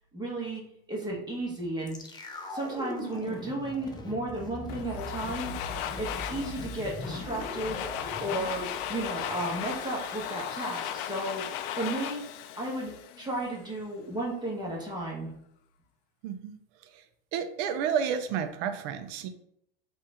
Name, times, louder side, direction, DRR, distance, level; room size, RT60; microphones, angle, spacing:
voice 1, 0.1-0.6 0.9-2.0 2.5-5.5 6.0-7.8 8.2-12.2 12.6-12.9 13.2-15.3, right 2 dB, 15° right, -3 dB, 1.3 m, -34 dB
sound 1, 1.9-12.0 12.3-12.4, left 2 dB, 15° left, 0.6 m, -41 dB
Domestic sounds home sounds, 4.7-13.6, left 10 dB, 60° left, 0.5 m, -37 dB
voice 2, 16.2-16.6 16.9-17.0 17.3-19.3, right 7 dB, 55° right, 9 dB, 0.6 m, -31 dB
4.1 x 2.6 x 3.8 m, 0.72 s
supercardioid pair, 115°, 29 cm